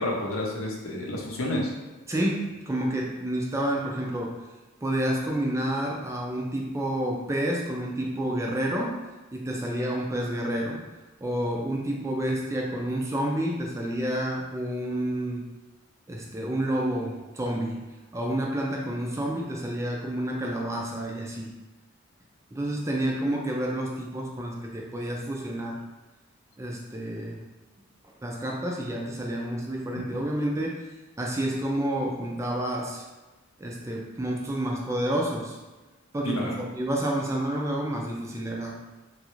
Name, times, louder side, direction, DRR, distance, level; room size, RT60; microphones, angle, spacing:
voice 1, 0.0-1.7 36.2-36.5, left 1 dB, 75° left, -1 dB, 0.6 m, -29 dB
voice 2, 2.1-4.3 4.8-9.0 9.3-10.8 11.2-15.4 16.1-17.8 18.1-21.5 22.5-25.8 26.6-27.4 28.2-30.8 31.2-33.0 33.6-35.6 36.1-38.7, right 1 dB, 15° right, -1 dB, 0.3 m, -29 dB
3.1 x 2.4 x 3.0 m, 1.2 s
head